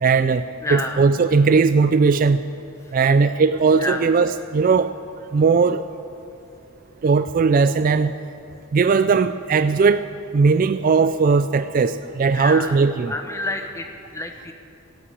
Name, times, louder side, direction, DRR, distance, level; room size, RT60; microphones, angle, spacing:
voice 1, 0.0-0.4 0.7-2.4 2.9-4.9 5.3-5.8 7.0-8.1 8.7-10.0 10.3-13.1, right 4 dB, 40° right, 12 dB, 0.3 m, -18 dB
voice 2, 0.6-1.0 2.9-3.0 3.8-4.1 12.3-12.8 13.1-14.5, left 1 dB, 15° left, 4 dB, 1.0 m, -29 dB
17.5 x 8.8 x 8.4 m, 2.7 s
head